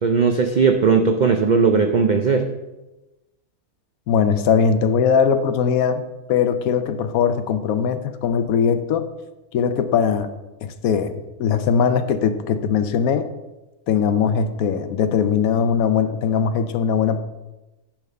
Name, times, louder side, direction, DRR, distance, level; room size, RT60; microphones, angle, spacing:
voice 1, 0.0-2.4, right 5 dB, 70° right, 6 dB, 0.4 m, -17 dB
voice 2, 4.1-6.0 6.3-9.1 9.5-10.3 10.6-13.3 13.9-17.2, left 7 dB, 75° left, 10 dB, 1.1 m, -20 dB
10.0 x 3.7 x 6.6 m, 1.0 s
omnidirectional pair, 1.5 m